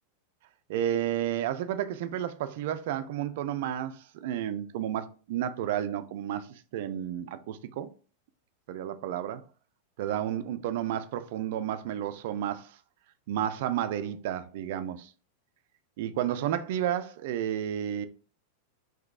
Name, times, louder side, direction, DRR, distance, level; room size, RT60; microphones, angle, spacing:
voice 1, 0.7-7.9 8.7-9.4 10.0-12.8 13.3-15.1 16.0-18.1, right 11 dB, 50° right, 0.3 m, -31 dB
3.8 x 2.7 x 2.4 m
figure-of-eight pair, 90°, 0 cm